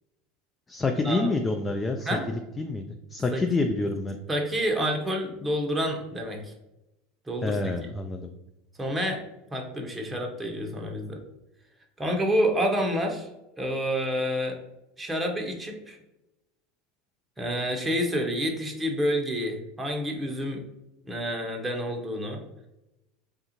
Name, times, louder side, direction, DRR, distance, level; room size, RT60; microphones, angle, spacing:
voice 1, 0.7-4.2 7.4-8.3, left 3 dB, 20° left, 5 dB, 0.3 m, -28 dB
voice 2, 4.3-6.5 7.3-7.9 8.8-9.2 9.5-11.2 12.0-13.3 13.6-14.6 15.0-16.0 17.4-20.6 21.0-22.4, equal, 15° right, 2 dB, 0.7 m, -28 dB
3.4 x 2.4 x 2.8 m, 0.96 s
hypercardioid pair, 80°, 0 cm